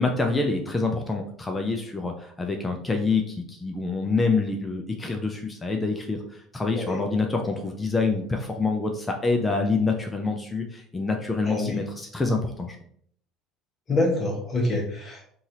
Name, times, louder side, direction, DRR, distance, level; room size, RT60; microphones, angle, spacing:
voice 1, 0.0-12.8, left 3 dB, 20° left, 3 dB, 0.6 m, -26 dB
voice 2, 11.5-11.8 13.9-15.3, left 2 dB, 40° left, -1 dB, 1.2 m, -26 dB
3.9 x 2.5 x 2.9 m, 0.62 s
hypercardioid pair, 65°, 0 cm